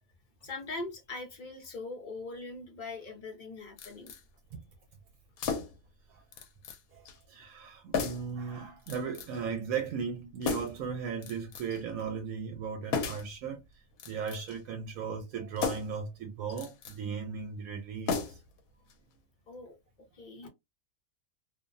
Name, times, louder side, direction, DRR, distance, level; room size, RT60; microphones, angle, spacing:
voice 1, 0.4-4.1 19.5-20.5, left 3 dB, 45° left, 0.8 m, -42 dB
sound 1, 3.8-4.2 5.4-5.9 6.3-6.8 7.1-7.2 7.9-8.3 8.9-9.4 10.4-10.9 11.2-11.8 12.9-13.3 13.9-14.6 15.6-16.0 16.5-17.0 18.1-18.6 18.9-19.0, left 5 dB, 85° left, 1.0 m, -35 dB
voice 2, 6.9-13.6 14.1-18.4, right 6 dB, 80° right, 1.0 m, -37 dB
2.6 x 2.1 x 2.4 m
omnidirectional pair, 1.5 m